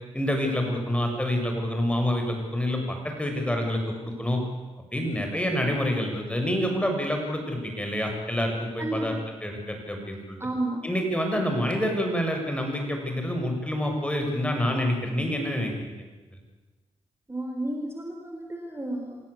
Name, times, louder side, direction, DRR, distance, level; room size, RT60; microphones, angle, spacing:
voice 1, 0.1-4.4 4.9-9.1 9.4-10.4 10.8-16.0, equal, 10° left, 3 dB, 7.4 m, -27 dB
voice 2, 10.4-10.8 17.3-19.2, right 1 dB, 20° right, 2 dB, 4.4 m, -31 dB
27.5 x 17.0 x 8.6 m, 1.3 s
cardioid pair, 50°, 12 cm